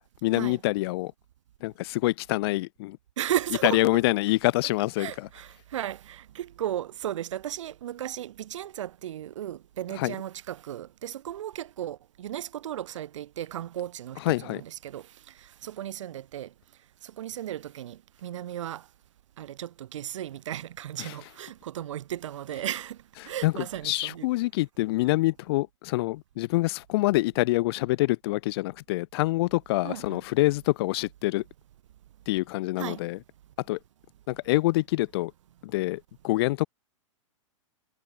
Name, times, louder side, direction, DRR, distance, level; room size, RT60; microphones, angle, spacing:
voice 1, 0.2-1.1 1.6-3.0 3.6-5.3 10.0-10.1 14.2-14.6 21.0-21.1 23.4-31.4 32.3-33.2 33.7-33.8 34.3-35.3 35.6-36.7, left 19 dB, 50° left, 0.5 m, -26 dB
voice 2, 3.2-3.8 5.0-16.5 17.0-18.8 19.4-23.0 23.2-24.3 29.8-30.2 32.8-33.0, right 11 dB, 65° right, 4.1 m, -35 dB
hypercardioid pair, 115°, 17 cm